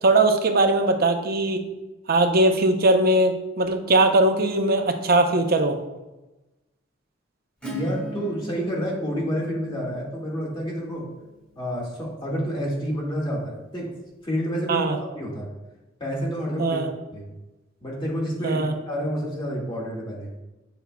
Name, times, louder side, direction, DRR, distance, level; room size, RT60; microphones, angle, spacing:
voice 1, 0.0-1.6 2.1-5.8 14.7-15.0 16.6-16.9 18.4-18.7, right 2 dB, 55° right, 6 dB, 0.7 m, -20 dB
Acoustic guitar / Strum, 7.6-13.1, right 1 dB, 5° left, 1.8 m, -41 dB
voice 2, 7.7-11.0 11.6-13.9 14.2-15.5 16.0-16.8 17.1-17.3 17.8-20.3, equal, 25° left, -3 dB, 1.8 m, -29 dB
7.8 x 7.0 x 2.3 m, 1.0 s
head